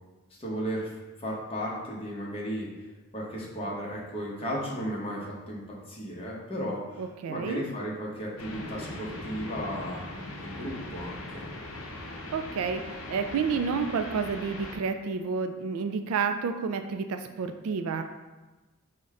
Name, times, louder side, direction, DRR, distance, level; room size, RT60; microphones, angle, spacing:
voice 1, 0.4-0.9 1.2-2.9 3.1-5.6 5.9-7.0 7.3-10.0 10.4-11.4, equal, 25° left, -4 dB, 0.9 m, -34 dB
voice 2, 7.0-7.7 12.3-12.8 13.1-18.0, right 5 dB, 80° right, 8 dB, 0.3 m, -30 dB
sound 1, 8.4-14.8, left 1 dB, 70° left, 0.7 m, -40 dB
5.2 x 2.2 x 3.6 m, 1.2 s
head